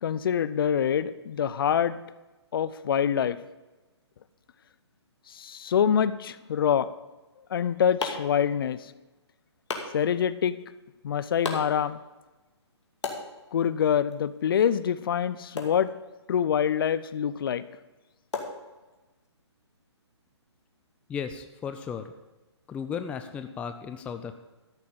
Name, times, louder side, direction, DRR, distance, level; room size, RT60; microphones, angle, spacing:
voice 1, 0.0-2.0 2.5-3.4 5.3-6.9 7.5-8.8 9.9-10.6 11.0-12.0 13.5-15.9 16.3-17.6, left 8 dB, 50° left, 15 dB, 0.6 m, -25 dB
sound 1, 7.3-19.3, left 3 dB, 75° left, 2.3 m, -41 dB
voice 2, 21.1-22.1 22.7-24.3, left 7 dB, 10° left, 8 dB, 0.4 m, -35 dB
13.5 x 6.0 x 7.1 m, 1.1 s
figure-of-eight pair, 140°, 15 cm